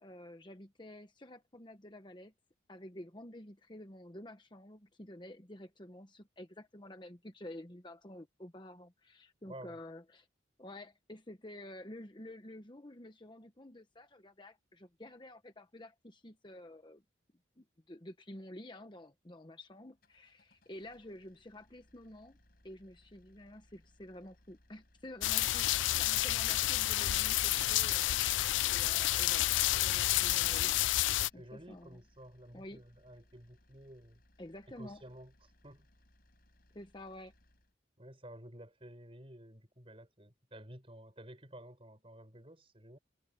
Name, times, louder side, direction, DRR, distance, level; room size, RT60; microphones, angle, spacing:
voice 1, 0.0-2.3 2.7-10.3 10.6-17.0 17.6-22.4 22.6-28.1 28.7-32.0 32.5-32.8 34.4-35.0 36.7-37.3, left 1 dB, 25° left, 1.1 m, -50 dB
voice 2, 9.5-9.8 31.3-34.2 34.8-35.3 35.6-35.9 38.0-43.0, right 1 dB, 30° right, 6.1 m, -52 dB
sound 1, 19.9-37.7, left 1 dB, 50° left, 6.8 m, -67 dB
sound 2, 25.2-31.3, left 15 dB, 80° left, 0.4 m, -30 dB
head